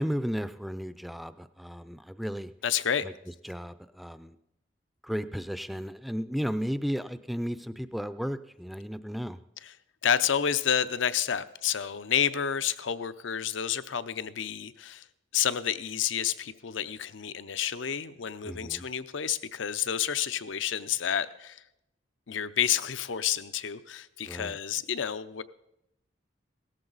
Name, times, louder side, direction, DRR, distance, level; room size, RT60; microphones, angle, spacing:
voice 1, 0.0-2.5 3.0-3.1 3.4-4.4 5.0-9.4 18.4-18.8 24.2-24.6, equal, ahead, 12 dB, 0.4 m, -34 dB
voice 2, 2.6-3.1 9.6-9.7 10.0-15.0 15.3-21.6 22.3-25.4, left 8 dB, 75° left, 13 dB, 0.6 m, -29 dB
17.0 x 13.5 x 4.0 m, 0.84 s
head